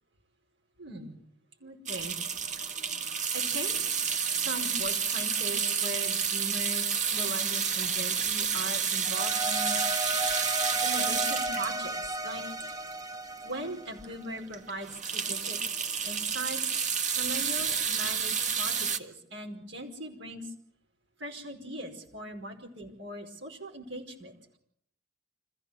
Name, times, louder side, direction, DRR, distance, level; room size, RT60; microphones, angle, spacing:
voice 1, 0.8-1.2 1.6-2.1 3.3-3.8 4.3-10.0 10.8-12.8 13.4-15.6 16.0-16.6 17.1-20.5 21.2-24.3, right 1 dB, 65° right, 3 dB, 5.1 m, -39 dB
sound 1, 1.9-13.2 13.6-13.7 14.0-14.1 14.5-19.0, right 6 dB, 40° right, 1.5 m, -30 dB
sound 2, 9.0-14.4, right 1 dB, 20° right, 0.9 m, -34 dB
26.5 x 15.0 x 8.4 m, 0.71 s
head